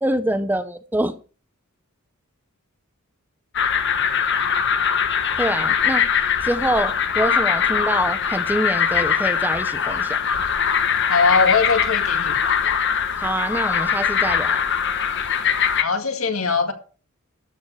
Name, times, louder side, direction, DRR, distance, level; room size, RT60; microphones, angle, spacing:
voice 1, 0.0-1.2 5.4-6.1 6.4-10.2 13.2-14.6, right 1 dB, 10° right, 0.6 m, -25 dB
sound 1, 3.5-15.8, left 7 dB, 55° left, 1.1 m, -21 dB
voice 2, 11.1-12.4 15.8-16.7, left 4 dB, 75° left, 2.0 m, -21 dB
13.0 x 5.1 x 7.0 m
head